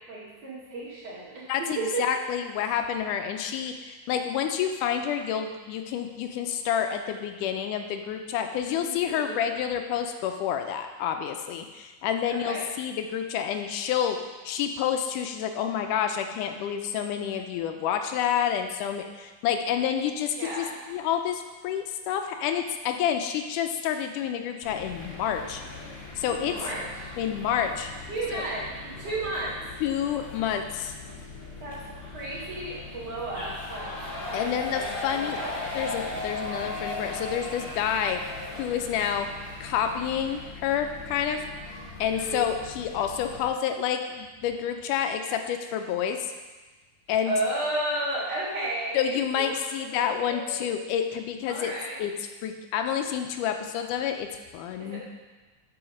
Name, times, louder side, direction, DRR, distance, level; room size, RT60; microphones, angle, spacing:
voice 1, 0.1-1.5 1.8-2.1 8.8-9.5 12.3-12.7 20.4-20.7 26.3-27.1 28.1-29.6 31.6-33.9 34.3-34.6 35.1-35.6 42.1-42.5 47.3-49.6 49.9-50.6 51.5-52.0 54.8-55.0, right 2 dB, 55° right, -7 dB, 3.2 m, -33 dB
voice 2, 1.5-14.2 14.5-25.6 26.2-26.5 27.2-27.9 28.3-28.4 29.8-30.9 34.3-35.4 35.7-38.2 38.6-39.3 39.6-41.4 42.0-46.2 47.1-47.3 48.9-51.7 52.0-54.3 54.5-55.0, left 9 dB, 80° left, 6 dB, 2.1 m, -29 dB
sound 1, 24.6-43.5, left 2 dB, 30° left, 2.2 m, -38 dB
7.8 x 5.7 x 6.3 m, 1.2 s
omnidirectional pair, 3.7 m